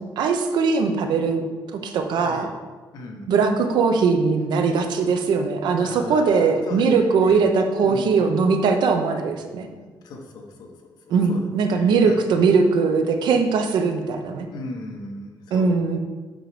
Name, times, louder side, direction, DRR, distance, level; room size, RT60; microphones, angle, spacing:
voice 1, 0.0-1.5 1.7-2.5 3.3-9.7 11.1-14.5 15.5-16.0, right 5 dB, 75° right, 6 dB, 0.8 m, -20 dB
voice 2, 2.1-2.5 2.9-3.3 5.8-7.4 7.8-8.2 9.8-10.7 11.1-12.4 14.5-15.8, left 2 dB, 65° left, 1 dB, 1.3 m, -38 dB
7.6 x 4.5 x 5.0 m, 1.4 s
cardioid pair, 165°, 8 cm